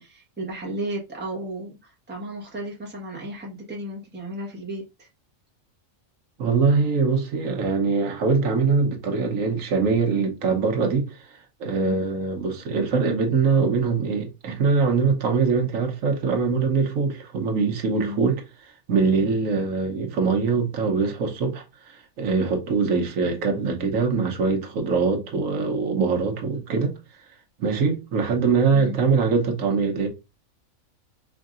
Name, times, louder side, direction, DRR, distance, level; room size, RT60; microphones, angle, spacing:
voice 1, 0.0-5.1 11.8-12.0 17.9-18.2 28.7-29.0, right 1 dB, 10° right, 1.1 m, -34 dB
voice 2, 6.4-18.4 18.9-26.9 27.6-30.1, right 4 dB, 70° right, 1.3 m, -23 dB
5.0 x 2.7 x 2.4 m
omnidirectional pair, 1.4 m